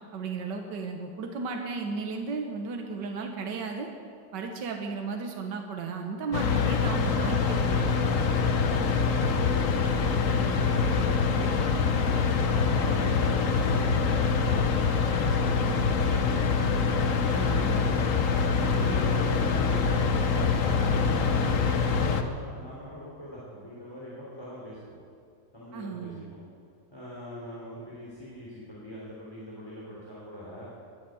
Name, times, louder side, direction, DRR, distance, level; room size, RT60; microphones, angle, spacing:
voice 1, 0.1-3.9 4.3-8.0 10.3-10.6 17.3-18.0 18.6-19.0 25.7-26.2, right 4 dB, 75° right, 3 dB, 1.8 m, -35 dB
sound 1, 6.3-22.2, left 5 dB, 55° left, 1.2 m, -25 dB
voice 2, 10.2-12.0 12.6-17.7 18.3-20.0 20.3-25.0 25.5-26.4 26.9-30.7, equal, 15° left, -7 dB, 3.3 m, -42 dB
20.5 x 8.4 x 7.7 m, 2.2 s
omnidirectional pair, 1.9 m